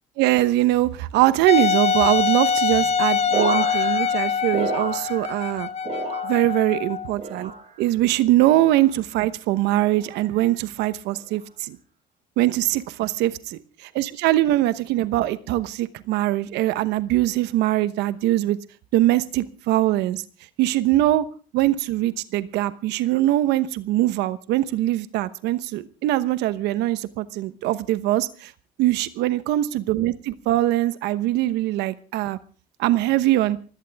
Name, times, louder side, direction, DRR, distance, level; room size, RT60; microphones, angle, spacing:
voice 1, 0.2-5.7 6.2-7.5 7.8-11.8 12.4-13.6 13.9-18.6 18.9-20.2 20.6-21.2 21.5-28.5 28.8-32.4 32.8-33.6, right 15 dB, 90° right, 14 dB, 1.0 m, -22 dB
Wind instrument woodwind instrument, 1.5-7.1, left 6 dB, 40° left, 1.2 m, -24 dB
sound 1, 3.3-5.5 5.8-6.7 7.2-7.9 8.5-8.9 9.8-10.2 11.1-11.4, right 4 dB, 40° right, 5.9 m, -31 dB
22.5 x 17.0 x 3.5 m, 0.37 s
cardioid pair, 110°, 17 cm